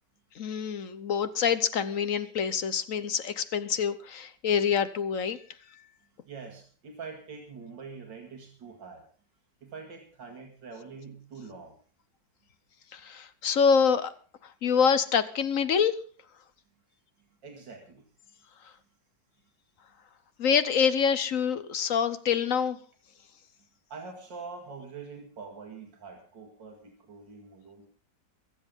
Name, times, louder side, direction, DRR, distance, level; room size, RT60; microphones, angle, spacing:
voice 1, 0.4-5.4 12.9-14.1 14.6-15.9 20.4-22.8, left 6 dB, 55° left, 13 dB, 1.1 m, -26 dB
voice 2, 6.3-9.1 9.6-11.8 17.4-18.1 23.9-27.9, right 4 dB, 90° right, 2 dB, 2.6 m, -44 dB
22.5 x 7.7 x 5.3 m, 0.41 s
omnidirectional pair, 1.9 m